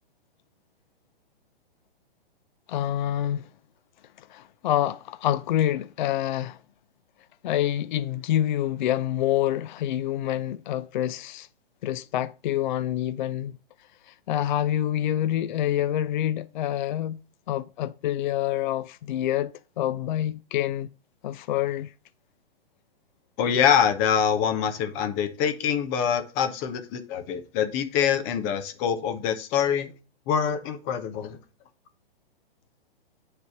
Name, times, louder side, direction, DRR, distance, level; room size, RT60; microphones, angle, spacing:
voice 1, 2.7-3.5 4.2-6.6 7.4-11.5 11.8-13.5 14.0-17.2 17.5-20.9 21.2-21.9, left 12 dB, 50° left, 0.4 m, -27 dB
voice 2, 23.4-29.9 30.3-31.4, left 8 dB, 30° left, 0.9 m, -25 dB
9.5 x 3.4 x 4.5 m
hypercardioid pair, 130°, 30 cm